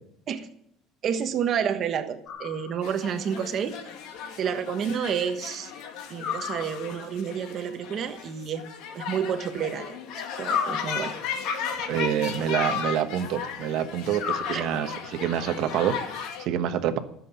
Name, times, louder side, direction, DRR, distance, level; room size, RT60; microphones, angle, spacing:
voice 1, 1.0-3.8 4.4-5.7 6.1-8.6 8.9-10.0 10.4-11.1 14.5-14.6, right 8 dB, 35° right, 8 dB, 1.3 m, -29 dB
sound 1, 2.3-3.1 6.2-7.2 10.4-11.5 14.2-15.2, left 7 dB, 45° left, 2.7 m, -33 dB
sound 2, 2.8-16.5, left 7 dB, 60° left, 2.2 m, -36 dB
voice 2, 11.9-17.0, right 9 dB, 50° right, 8 dB, 1.2 m, -27 dB
15.0 x 7.7 x 8.9 m, 0.70 s
cardioid pair, 175°, 0 cm